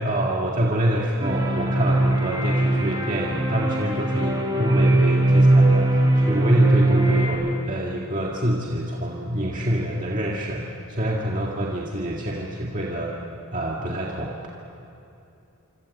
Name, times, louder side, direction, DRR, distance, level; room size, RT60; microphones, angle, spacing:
voice 1, 0.0-13.1 13.5-14.5, right 1 dB, 35° right, -3 dB, 2.0 m, -26 dB
sound 1, 1.2-7.3, right 1 dB, 20° right, 4.4 m, -20 dB
26.5 x 26.0 x 8.3 m, 2.8 s
head